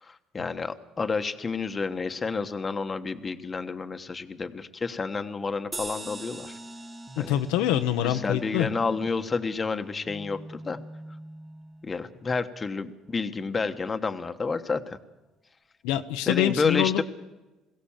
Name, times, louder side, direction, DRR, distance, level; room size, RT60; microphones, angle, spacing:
voice 1, 0.0-6.6 7.2-7.4 8.0-10.8 11.8-15.0 16.3-17.0, left 4 dB, 25° left, 8 dB, 1.3 m, -30 dB
sound 1, 5.7-10.6, right 2 dB, 20° right, 2.7 m, -44 dB
sound 2, 6.1-12.0, equal, ahead, 1.5 m, -44 dB
voice 2, 7.2-8.7 15.8-17.0, left 12 dB, 85° left, 7 dB, 1.0 m, -25 dB
22.0 x 16.5 x 7.4 m, 1.1 s
supercardioid pair, 95°, 0 cm